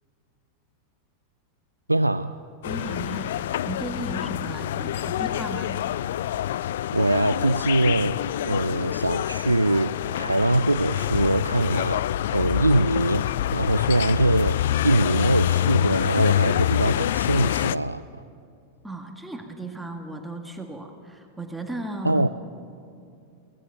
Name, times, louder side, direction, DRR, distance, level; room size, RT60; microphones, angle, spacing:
voice 1, 1.9-2.4 6.9-18.0 22.0-22.3, right 1 dB, 85° right, 11 dB, 0.4 m, -23 dB
sound 1, 2.6-17.7, left 12 dB, 55° left, 0.4 m, -26 dB
voice 2, 2.6-5.8 18.8-22.3, right 2 dB, 5° right, 3 dB, 1.8 m, -35 dB
23.5 x 18.5 x 7.2 m, 2.5 s
figure-of-eight pair, 90°, 0 cm